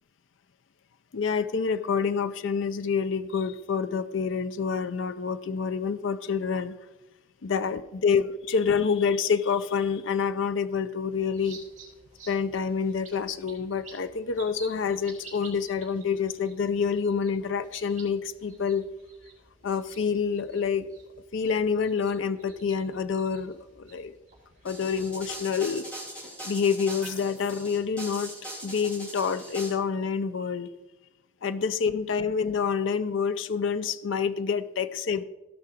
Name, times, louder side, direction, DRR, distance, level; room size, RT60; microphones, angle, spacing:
voice 1, 1.1-6.7 7.4-11.6 12.3-18.9 19.6-20.9 21.3-24.1 24.6-25.9 26.4-28.3 28.6-30.7 31.4-35.2, left 6 dB, 60° left, 12 dB, 0.5 m, -27 dB
sound 1, 11.1-25.4, right 4 dB, 35° right, 3.9 m, -52 dB
sound 2, 24.7-29.7, right 1 dB, 5° left, 3.1 m, -40 dB
15.5 x 5.9 x 4.5 m, 1.1 s
head